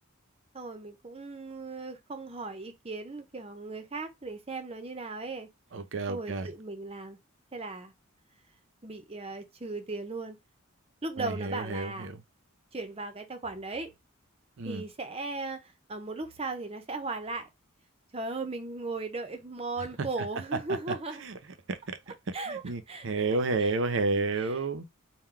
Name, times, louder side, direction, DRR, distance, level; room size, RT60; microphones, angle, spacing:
voice 1, 0.5-5.5 6.1-7.2 7.5-7.9 8.8-10.4 11.0-12.1 12.7-13.9 14.6-17.5 18.1-21.2 22.3-22.6 22.9-23.1 23.6-23.7 24.3-24.6, right 3 dB, 30° right, 0.7 m, -37 dB
voice 2, 5.7-6.5 11.2-12.2 14.6-14.8 21.2-21.4 21.7-22.0 22.5-24.8, right 3 dB, 60° right, 0.6 m, -31 dB
3.8 x 2.2 x 4.4 m
head